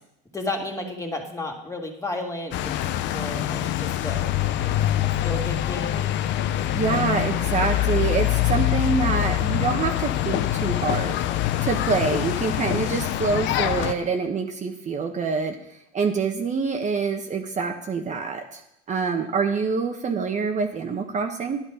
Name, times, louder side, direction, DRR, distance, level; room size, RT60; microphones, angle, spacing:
voice 1, 0.3-2.7 3.1-4.3 5.0-6.1, left 2 dB, 15° left, 1 dB, 2.6 m, -32 dB
sound 1, 2.5-13.9, left 13 dB, 60° left, 0.8 m, -24 dB
voice 2, 6.7-11.2 11.6-15.5 15.9-18.6 18.9-21.6, right 5 dB, 35° right, 3 dB, 1.3 m, -26 dB
10.5 x 10.5 x 5.0 m, 0.78 s
supercardioid pair, 90°, 21 cm